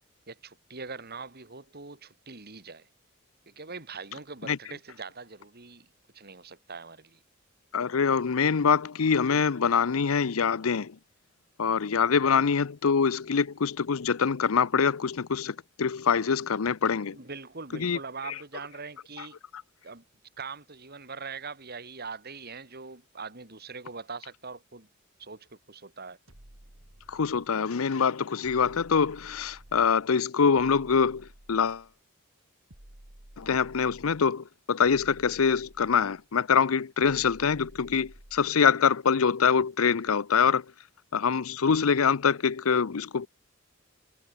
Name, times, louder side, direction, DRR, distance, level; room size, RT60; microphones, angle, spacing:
voice 1, 0.3-2.9 3.5-5.9 6.1-7.2 17.1-19.4 19.8-20.0 20.4-24.9 25.2-26.2, right 4 dB, 50° right, 2.9 m, -42 dB
voice 2, 7.7-11.0 11.6-17.2 17.7-18.0 27.1-31.8 33.4-40.6 41.1-43.3, left 6 dB, 90° left, 0.6 m, -24 dB
sound 1, 26.3-27.6 28.4-30.1 30.6-32.0 32.7-34.3 34.8-36.2 37.0-38.6, right 1 dB, 70° right, 3.2 m, -53 dB
head